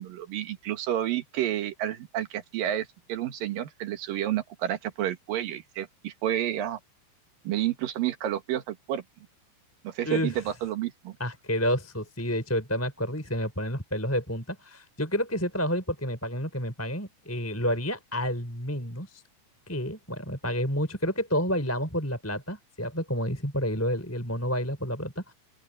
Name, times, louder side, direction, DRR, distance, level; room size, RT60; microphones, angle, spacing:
voice 1, 0.0-6.8 7.4-9.0 9.8-11.2, right 12 dB, 60° right, 2.7 m, -30 dB
voice 2, 11.2-19.2 19.7-25.3, equal, 5° left, 3.9 m, -29 dB
open air
omnidirectional pair, 5.3 m